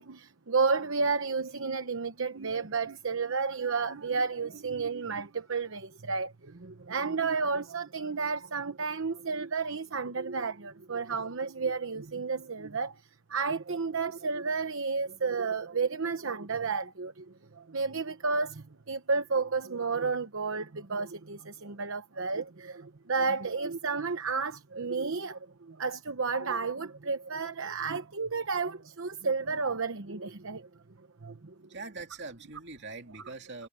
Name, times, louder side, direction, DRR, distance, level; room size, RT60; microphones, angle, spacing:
voice 1, 0.0-13.0 13.3-17.3 17.5-30.7 31.2-31.5, right 4 dB, 70° right, 1.0 m, -32 dB
voice 2, 31.7-33.7, right 3 dB, 55° right, 2.8 m, -42 dB
head